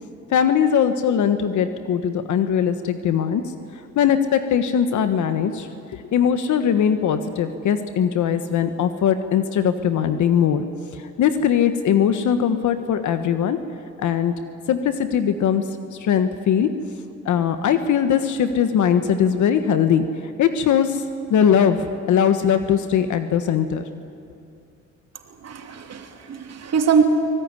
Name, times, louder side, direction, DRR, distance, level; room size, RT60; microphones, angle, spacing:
voice 1, 0.3-3.4 3.9-10.6 11.0-13.6 14.0-14.3 14.7-15.6 15.9-16.7 17.2-21.0 21.3-23.8, left 8 dB, 75° left, 9 dB, 1.4 m, -20 dB
voice 2, 25.4-27.0, right 6 dB, 60° right, 4 dB, 3.0 m, -22 dB
25.0 x 19.5 x 9.7 m, 2.5 s
cardioid pair, 90°, 30 cm